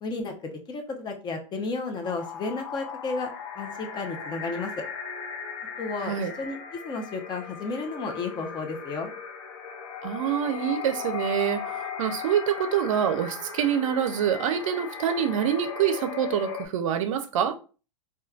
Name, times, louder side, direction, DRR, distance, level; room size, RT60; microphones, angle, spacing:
voice 1, 0.0-4.8 5.8-9.1, left 3 dB, 25° left, 0.6 m, -33 dB
sound 1, 2.0-16.7, left 6 dB, 65° left, 0.7 m, -37 dB
voice 2, 10.0-17.5, right 8 dB, 75° right, 0.4 m, -26 dB
3.0 x 2.2 x 2.3 m
hypercardioid pair, 115°, 17 cm